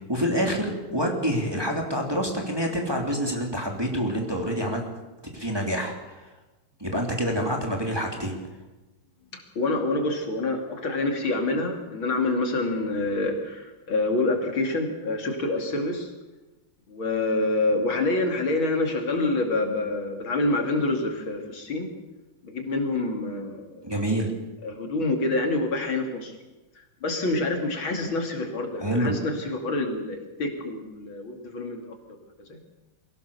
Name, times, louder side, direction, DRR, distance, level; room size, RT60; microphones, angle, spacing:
voice 1, 0.1-4.8 5.3-6.3 6.8-8.4 23.8-24.3 28.8-29.1, equal, 10° right, 1 dB, 2.9 m, -27 dB
voice 2, 9.3-16.1 16.9-21.9 22.4-23.9 24.6-26.3 26.8-31.9 32.5-32.6, left 2 dB, 65° left, 3 dB, 3.4 m, -27 dB
23.0 x 16.5 x 7.0 m, 1.1 s
omnidirectional pair, 2.4 m